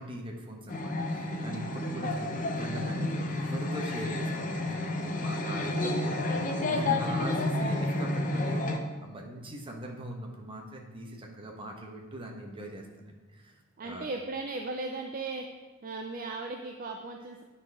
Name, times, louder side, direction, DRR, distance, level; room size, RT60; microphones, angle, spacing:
voice 1, 0.0-8.6 9.0-13.6 13.8-14.1, right 1 dB, 25° right, 1 dB, 1.1 m, -41 dB
sound 1, 0.7-8.8, left 2 dB, 40° left, 0.7 m, -30 dB
voice 2, 1.5-1.9 6.8-7.3 13.8-15.5 15.8-17.4, right 3 dB, 40° right, 3 dB, 0.5 m, -37 dB
9.4 x 4.3 x 4.7 m, 1.4 s
head